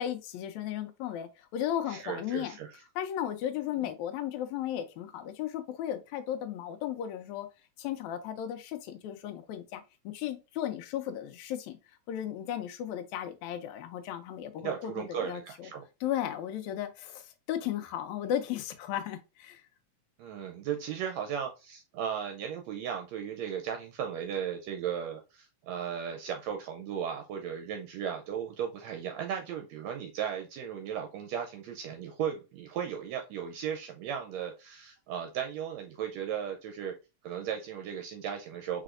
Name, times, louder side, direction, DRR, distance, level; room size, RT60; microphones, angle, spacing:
voice 1, 0.0-2.5 3.0-7.5 7.8-11.8 12.1-15.7 16.0-19.6, left 11 dB, 80° left, 1.9 m, -35 dB
voice 2, 1.9-2.7 14.6-15.8 20.2-36.9 37.2-38.8, right 8 dB, 75° right, 1.7 m, -36 dB
4.9 x 4.1 x 2.5 m
omnidirectional pair, 3.4 m